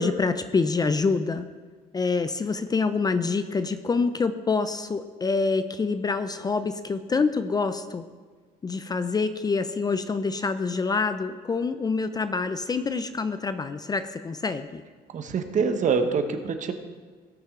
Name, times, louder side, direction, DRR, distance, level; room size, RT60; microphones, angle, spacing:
voice 1, 0.0-1.5 1.9-8.1 8.6-14.8, left 4 dB, 25° left, 11 dB, 0.5 m, -26 dB
voice 2, 15.1-16.7, right 5 dB, 45° right, 7 dB, 1.1 m, -25 dB
18.0 x 6.2 x 3.7 m, 1.5 s
cardioid pair, 110°, 17 cm